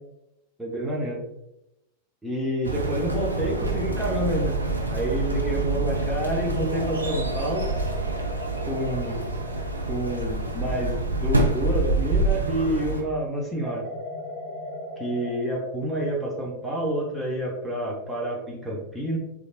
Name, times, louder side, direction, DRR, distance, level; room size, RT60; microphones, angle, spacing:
voice 1, 0.6-1.2 2.2-4.6 4.9-7.8 8.7-9.3 9.9-13.9 15.0-19.2, right 1 dB, 5° right, -3 dB, 0.6 m, -28 dB
sound 1, 2.6-13.0, right 2 dB, 80° right, 0.4 m, -27 dB
sound 2, 3.2-5.8 6.8-12.6 13.6-15.4, left 1 dB, 40° right, 0.7 m, -39 dB
3.3 x 2.4 x 2.3 m, 0.87 s
figure-of-eight pair, 90°, 0 cm